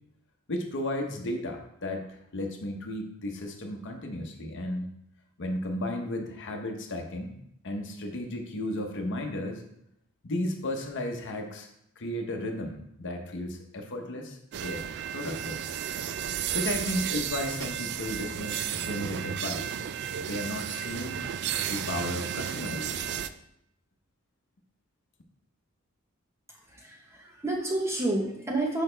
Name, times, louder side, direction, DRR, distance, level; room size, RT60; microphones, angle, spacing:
voice 1, 0.5-4.9 5.4-7.3 7.6-9.6 10.2-11.7 12.0-14.8 15.1-15.6 16.5-19.8 20.2-21.2 21.7-23.2, left 1 dB, 55° left, 3 dB, 0.9 m, -34 dB
sound 1, 14.5-23.3, right 9 dB, 50° right, 0.3 m, -33 dB
voice 2, 26.5-28.8, right 2 dB, 10° right, 0 dB, 1.0 m, -30 dB
6.3 x 4.9 x 3.3 m, 0.76 s
head